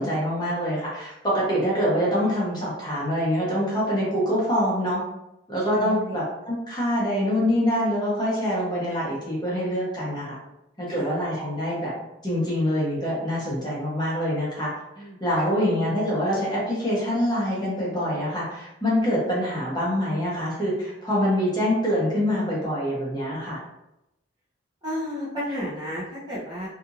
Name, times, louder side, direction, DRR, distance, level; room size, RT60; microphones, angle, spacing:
voice 1, 0.0-5.0 5.5-10.4 10.8-11.9 12.2-14.7 15.2-23.6, equal, 20° left, -7 dB, 0.8 m, -25 dB
voice 2, 5.8-6.2 10.9-11.1 15.0-15.2 24.8-26.7, equal, 20° right, -8 dB, 0.8 m, -32 dB
2.8 x 2.5 x 2.5 m, 0.88 s
head